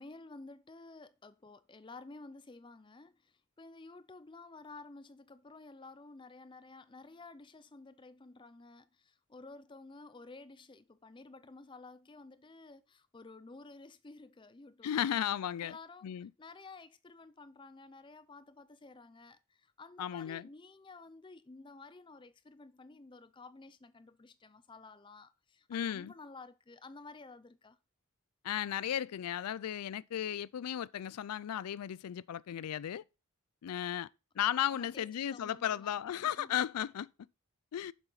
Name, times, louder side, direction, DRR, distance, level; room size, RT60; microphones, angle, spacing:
voice 1, 0.0-15.0 15.6-16.1 16.4-27.8 34.7-35.0 35.3-36.5, left 3 dB, 20° left, 0.5 m, -52 dB
voice 2, 14.8-15.8 16.0-16.3 20.0-20.5 25.7-26.1 28.4-33.0 33.6-34.1 34.4-37.1 37.7-37.9, left 10 dB, 90° left, 0.4 m, -35 dB
7.0 x 7.0 x 3.9 m
head